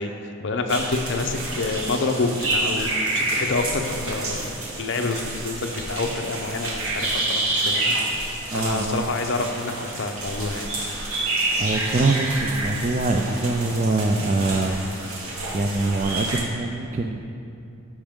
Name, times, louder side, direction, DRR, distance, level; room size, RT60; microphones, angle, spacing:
voice 1, 0.0-2.9 3.1-4.5 4.8-8.0 8.5-10.7, left 3 dB, 55° left, 5 dB, 0.6 m, -27 dB
sound 1, 0.7-16.4, right 2 dB, 90° right, 1.4 m, -28 dB
voice 2, 8.5-9.0 11.6-15.0 15.5-17.2, right 2 dB, 35° right, 2 dB, 0.3 m, -24 dB
12.5 x 5.2 x 3.6 m, 2.6 s
head